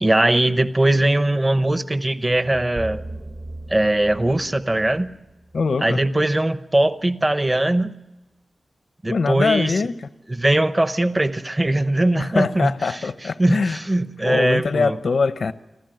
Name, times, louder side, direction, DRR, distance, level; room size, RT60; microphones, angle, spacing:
voice 1, 0.0-3.0 3.7-5.1 5.8-7.9 9.0-9.7 10.3-13.0 13.4-15.0, right 1 dB, 25° right, 12 dB, 0.9 m, -20 dB
sound 1, 2.3-6.4, right 2 dB, 40° right, 1.3 m, -38 dB
voice 2, 5.5-6.0 9.1-10.1 12.2-13.8 14.2-15.5, left 4 dB, 80° left, 12 dB, 0.8 m, -22 dB
26.0 x 15.0 x 7.7 m, 1.0 s
wide cardioid pair, 100°, 0 cm